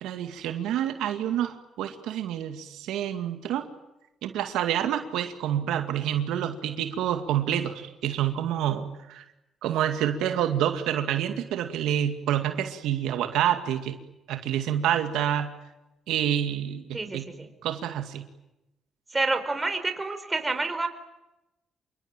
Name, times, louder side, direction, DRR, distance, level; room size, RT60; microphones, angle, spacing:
voice 1, 0.0-3.7 4.2-9.2 9.6-14.0 14.3-15.5 16.1-17.3 17.6-18.3, right 10 dB, 90° right, 7 dB, 2.1 m, -28 dB
voice 2, 16.9-17.5 19.1-20.9, right 3 dB, 20° right, 8 dB, 4.7 m, -28 dB
28.0 x 24.0 x 9.0 m, 0.94 s
cardioid pair, 90°, 0 cm